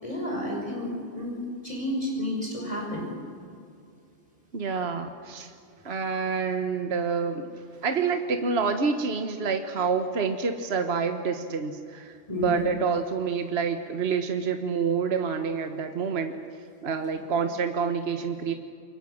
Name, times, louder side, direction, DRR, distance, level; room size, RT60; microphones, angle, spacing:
voice 1, 0.0-3.1 12.3-12.6, equal, 30° left, -1 dB, 5.2 m, -31 dB
voice 2, 4.5-5.5 5.8-7.5 7.8-16.3 16.8-18.5, right 5 dB, 60° right, 6 dB, 1.5 m, -28 dB
29.0 x 24.0 x 6.5 m, 2.4 s
omnidirectional pair, 1.2 m